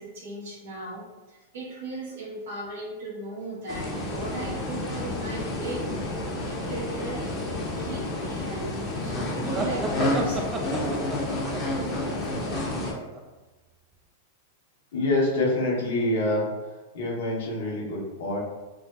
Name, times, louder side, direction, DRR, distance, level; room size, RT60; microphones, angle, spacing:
voice 1, 0.0-7.3 7.8-10.9, right 2 dB, 75° right, -6 dB, 1.5 m, -37 dB
sound 1, 3.7-12.9, left 1 dB, 25° left, 0.8 m, -30 dB
sound 2, 9.5-13.2, right 2 dB, 25° right, 0.4 m, -34 dB
voice 2, 14.9-16.5 16.9-18.4, left 1 dB, 70° left, -4 dB, 0.9 m, -26 dB
3.4 x 2.5 x 2.3 m, 1.2 s
hypercardioid pair, 110°, 0 cm